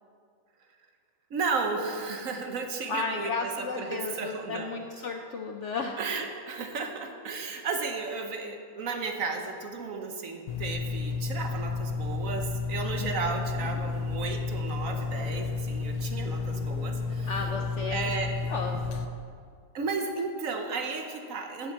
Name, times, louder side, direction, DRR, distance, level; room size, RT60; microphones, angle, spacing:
voice 1, 1.3-4.8 6.0-17.3 17.9-18.3 19.7-21.7, right 4 dB, 60° right, 5 dB, 1.1 m, -34 dB
voice 2, 2.9-6.0 7.3-7.5 13.0-13.4 17.3-18.1 18.4-19.1, left 4 dB, 65° left, 4 dB, 0.7 m, -34 dB
sound 1, 10.5-19.1, left 4 dB, 80° left, 1.3 m, -31 dB
8.3 x 7.8 x 7.3 m, 2.2 s
omnidirectional pair, 1.8 m